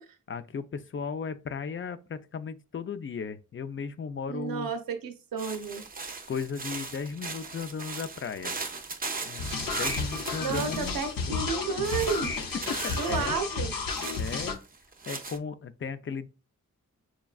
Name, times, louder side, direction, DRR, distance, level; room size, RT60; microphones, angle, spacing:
voice 1, 0.3-4.7 6.3-8.6 9.2-11.4 12.8-13.3 14.2-14.6 15.1-16.3, left 5 dB, 40° left, 0.4 m, -36 dB
voice 2, 4.3-5.8 10.4-12.3 13.0-13.7, right 5 dB, 85° right, 0.6 m, -31 dB
sound 1, 5.4-11.3 11.8-13.3 13.9-15.4, right 4 dB, 25° right, 0.5 m, -38 dB
sound 2, 9.4-14.5, left 4 dB, 80° left, 0.6 m, -32 dB
6.0 x 2.2 x 2.3 m
cardioid pair, 50°, 34 cm